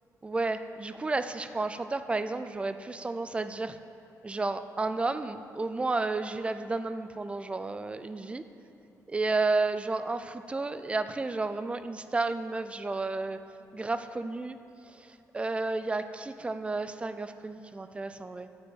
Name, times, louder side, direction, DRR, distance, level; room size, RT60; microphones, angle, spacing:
voice 1, 0.2-3.8 4.2-8.4 9.1-13.4 13.7-14.6 14.8-18.5, right 3 dB, 15° right, 11 dB, 0.4 m, -32 dB
13.0 x 5.2 x 8.0 m, 3.0 s
cardioid pair, 140°, 7 cm